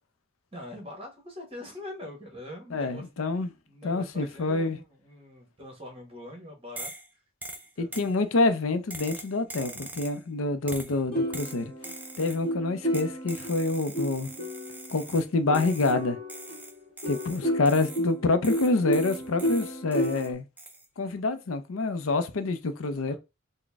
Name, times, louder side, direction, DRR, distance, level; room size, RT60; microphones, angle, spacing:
voice 1, 0.5-3.1 3.7-6.9 7.7-8.1 23.0-23.2, left 1 dB, 30° right, 1.3 m, -43 dB
voice 2, 2.7-3.5 3.8-4.8 7.8-11.7 12.2-14.3 14.9-16.2 17.1-20.4 21.0-23.2, left 3 dB, 85° left, 0.5 m, -27 dB
sound 1, 6.8-7.1 7.4-8.1 8.9-10.2 10.7-11.0 11.3-12.4 12.9-15.3 15.5-16.0 16.3-18.1 18.4-20.3 20.6-20.9, right 2 dB, 10° right, 0.4 m, -42 dB
sound 2, 11.1-15.0 15.5-20.3, equal, 30° left, 1.0 m, -32 dB
3.9 x 2.2 x 3.5 m
head